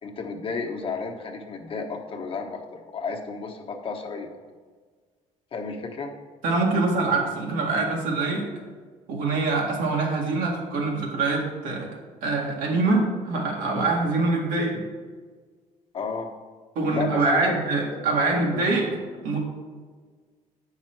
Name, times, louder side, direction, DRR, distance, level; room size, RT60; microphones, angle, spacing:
voice 1, 0.0-4.4 5.5-6.1 15.9-16.3 16.9-17.5 17.9-18.7, left 4 dB, 40° left, 3 dB, 1.0 m, -33 dB
voice 2, 6.4-8.5 9.1-11.9 12.2-14.8 16.8-18.9 19.2-19.4, right 3 dB, 85° right, -1 dB, 1.9 m, -24 dB
8.6 x 5.8 x 4.5 m, 1.5 s
cardioid pair, 135°, 14 cm